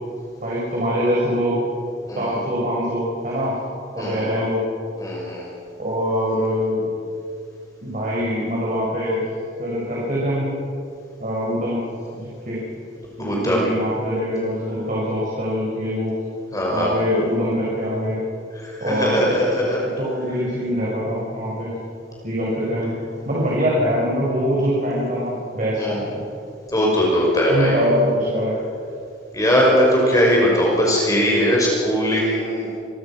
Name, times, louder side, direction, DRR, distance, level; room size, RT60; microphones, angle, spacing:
voice 1, 0.4-1.5 2.2-3.6 3.9-4.6 5.8-6.9 7.8-9.3 9.6-10.5 11.2-11.8 12.1-12.6 13.2-16.1 16.7-18.2 18.8-19.3 20.0-21.7 22.2-22.9 23.3-26.3 27.5-28.6, equal, 45° right, -5 dB, 6.8 m, -23 dB
voice 2, 4.0-4.3 5.0-5.5 13.2-13.6 16.5-16.9 18.6-19.8 25.8-26.0 26.7-27.9 29.3-32.8, equal, 20° left, -3 dB, 5.8 m, -20 dB
27.5 x 23.5 x 6.2 m, 2.4 s
head